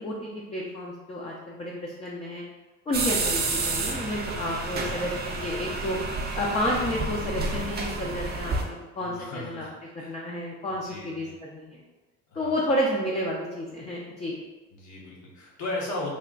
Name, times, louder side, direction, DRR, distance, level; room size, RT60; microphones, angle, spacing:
voice 1, 0.0-2.4 2.9-6.0 6.4-8.6 9.0-9.7 9.9-11.8 12.4-14.4, left 1 dB, 20° left, -3 dB, 0.5 m, -30 dB
sound 1, 2.9-8.6, right 3 dB, 30° right, 0.6 m, -30 dB
voice 2, 9.0-9.7 10.0-10.1 10.7-11.3 12.3-12.7 14.7-16.1, left 2 dB, 65° left, -4 dB, 1.2 m, -36 dB
3.3 x 2.2 x 3.8 m, 1.2 s
cardioid pair, 100°, 32 cm